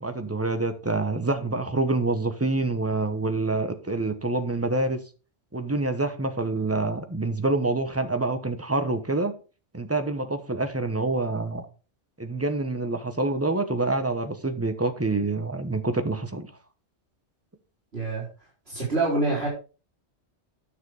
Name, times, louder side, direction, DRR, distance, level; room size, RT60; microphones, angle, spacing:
voice 1, 0.0-5.0 5.5-9.3 9.7-11.7 12.2-16.5, right 2 dB, 15° right, 1.0 m, -26 dB
voice 2, 17.9-18.2 18.7-19.5, right 2 dB, 60° right, 4.4 m, -26 dB
10.0 x 6.7 x 4.8 m
omnidirectional pair, 1.2 m